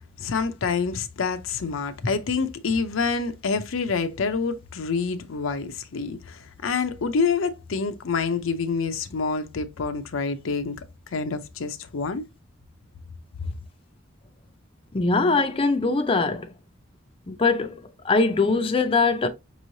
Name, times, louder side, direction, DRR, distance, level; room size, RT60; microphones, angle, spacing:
voice 1, 0.2-10.8 11.1-12.2, left 5 dB, 75° left, 0.6 m, -27 dB
voice 2, 14.9-16.5 17.3-19.3, left 3 dB, 25° left, 0.5 m, -22 dB
5.4 x 3.1 x 2.6 m
head